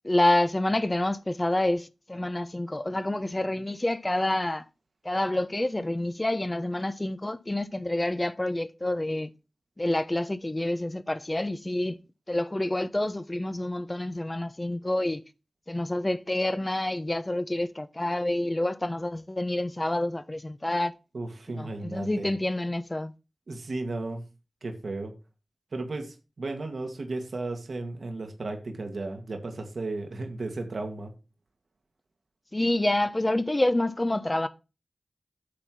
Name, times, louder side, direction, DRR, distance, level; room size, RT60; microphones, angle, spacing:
voice 1, 0.0-4.6 5.0-9.3 9.8-12.0 12.3-15.2 15.7-20.9 21.6-23.1 32.5-34.5, left 1 dB, 25° left, 0.9 m, -28 dB
voice 2, 21.1-22.3 23.5-24.2 24.6-25.1 25.7-31.1, right 2 dB, 75° right, 1.8 m, -34 dB
8.6 x 4.5 x 6.0 m
cardioid pair, 50°, 0 cm